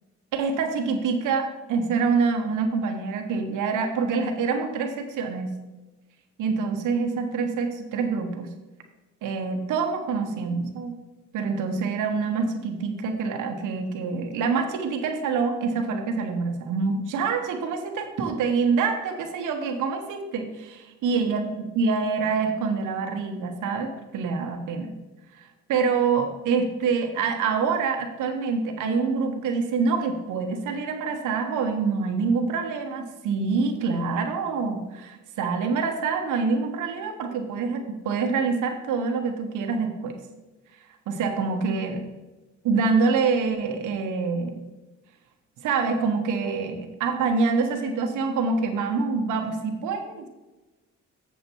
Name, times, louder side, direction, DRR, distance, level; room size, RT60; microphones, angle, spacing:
voice 1, 0.3-5.5 6.4-8.5 9.2-10.9 11.3-21.5 21.7-24.9 25.4-40.1 41.1-42.0 42.6-44.6 45.6-50.3, right 5 dB, 85° right, 5 dB, 1.2 m, -26 dB
7.5 x 7.0 x 4.5 m, 1.1 s
cardioid pair, 90°, 30 cm